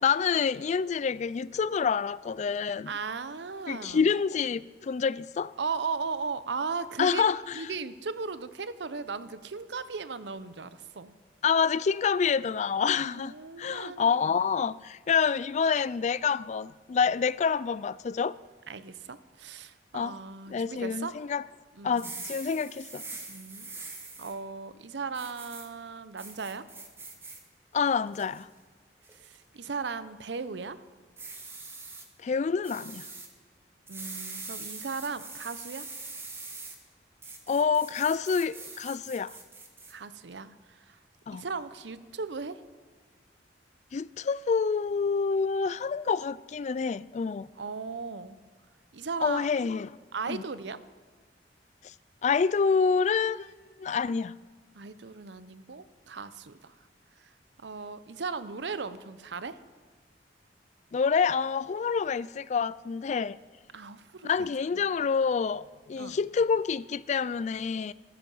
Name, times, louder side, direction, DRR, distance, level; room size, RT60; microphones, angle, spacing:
voice 1, 0.0-2.9 3.7-5.5 7.0-7.6 11.4-18.4 19.9-20.2 20.5-21.4 21.8-23.0 27.7-28.5 32.2-33.0 37.5-39.3 41.3-41.5 43.9-47.5 49.2-50.0 50.3-50.4 52.2-53.5 53.8-54.3 60.9-63.4 64.2-67.9, left 6 dB, 40° left, 0.3 m, -27 dB
voice 2, 2.6-4.1 5.6-7.3 7.5-11.1 13.0-14.4 18.7-21.2 21.7-22.2 23.3-23.7 24.2-26.7 29.1-30.8 33.9-35.9 39.9-41.0 41.3-42.6 47.6-48.4 48.9-49.5 50.1-50.8 54.7-56.7 57.2-57.3 57.6-59.6 63.7-64.5 64.7-65.1 66.0-66.2, right 4 dB, 75° right, 0.7 m, -37 dB
sound 1, 21.9-24.3 25.1-25.7 26.2-27.4 27.9-28.4 29.0-29.3 31.2-32.0 32.6-33.3 33.9-36.8 37.2-39.9, right 3 dB, 15° right, 1.6 m, -43 dB
14.5 x 13.0 x 5.5 m
head